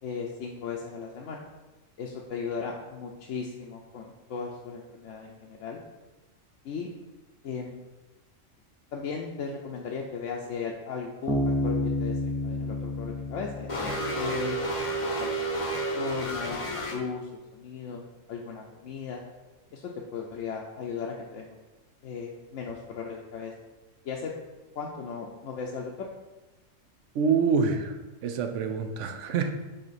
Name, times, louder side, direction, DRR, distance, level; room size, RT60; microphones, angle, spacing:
voice 1, 0.0-1.5 2.0-5.8 6.6-6.9 7.4-7.8 8.9-14.6 15.2-15.5 15.9-18.0 18.3-19.2 19.7-21.6 22.0-23.5 24.0-24.3 24.7-26.1, left 5 dB, 70° left, -1 dB, 0.9 m, -36 dB
Bass guitar, 11.3-14.8, left 1 dB, 5° right, 0.5 m, -30 dB
sound 1, 13.7-16.9, right 1 dB, 30° left, 0.8 m, -30 dB
voice 2, 27.1-29.5, right 5 dB, 70° right, 6 dB, 0.9 m, -26 dB
7.7 x 2.9 x 4.1 m, 1.1 s
omnidirectional pair, 1.4 m